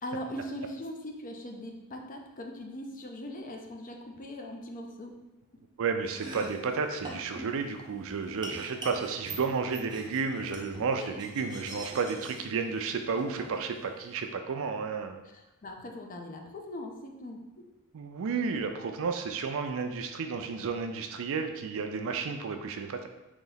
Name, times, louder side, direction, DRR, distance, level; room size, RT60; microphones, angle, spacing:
voice 1, 0.0-5.1 10.9-11.2 15.2-17.4, left 1 dB, 35° left, 2 dB, 0.5 m, -40 dB
voice 2, 5.8-15.2 17.9-23.1, right 5 dB, 65° right, 6 dB, 0.4 m, -32 dB
Domestic sounds home sounds, 6.0-14.2, right 1 dB, 20° right, 0.6 m, -45 dB
4.0 x 2.9 x 3.9 m, 0.98 s
head